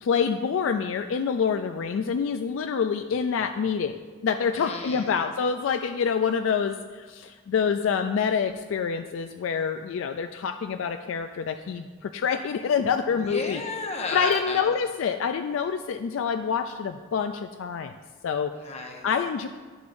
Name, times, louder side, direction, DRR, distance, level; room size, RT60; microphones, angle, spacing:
voice 1, 0.0-4.0 4.2-13.6 14.1-17.9 18.2-18.5 19.0-19.5, left 6 dB, 70° left, 8 dB, 0.3 m, -26 dB
voice 2, 4.5-5.2 13.1-14.7 18.5-19.1, left 3 dB, 35° left, 2 dB, 0.9 m, -33 dB
9.8 x 6.9 x 2.6 m, 1.5 s
head